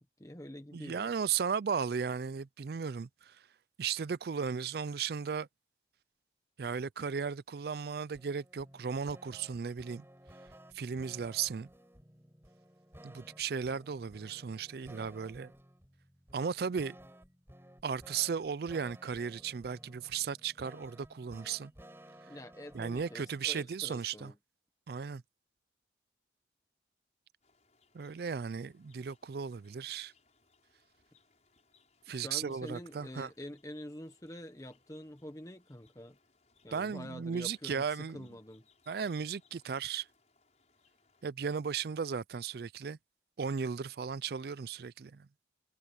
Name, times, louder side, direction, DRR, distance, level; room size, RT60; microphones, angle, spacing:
voice 1, 0.0-1.1 22.3-24.4 32.1-36.2 36.6-38.7, left 1 dB, 20° left, 1.2 m, -47 dB
voice 2, 0.7-3.4 3.8-5.5 6.6-10.0 10.7-11.7 13.0-15.5 16.3-17.0 17.8-21.7 22.7-24.3 24.9-25.2 27.9-30.1 32.1-33.3 36.7-38.3 38.9-40.1 41.2-43.0 43.4-45.3, right 6 dB, 55° right, 0.4 m, -36 dB
sound 1, 8.1-23.4, equal, 15° right, 4.6 m, -56 dB
sound 2, 27.4-41.3, left 4 dB, 40° left, 6.4 m, -71 dB
head